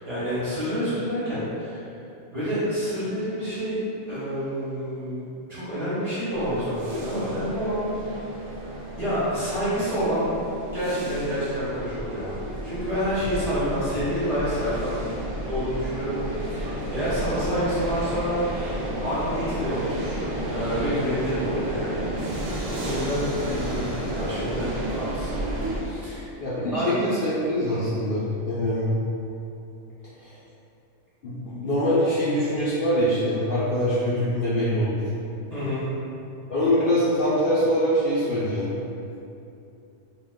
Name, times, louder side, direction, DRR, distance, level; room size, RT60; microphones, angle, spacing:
voice 1, 0.0-1.9 2.3-3.7 4.1-8.2 9.0-10.3 10.7-18.4 19.0-20.2 20.5-22.0 22.6-24.7 24.9-25.3 25.7-26.3 26.7-26.9 27.7-27.8 35.5-35.8, equal, 35° right, -12 dB, 0.8 m, -28 dB
sound 1, 6.3-25.8, right 1 dB, 85° right, 1.0 m, -32 dB
voice 2, 26.4-28.9 30.2-30.3 31.2-35.0 36.5-38.7, equal, 60° left, -10 dB, 0.5 m, -24 dB
2.4 x 2.3 x 3.4 m, 2.7 s
omnidirectional pair, 1.3 m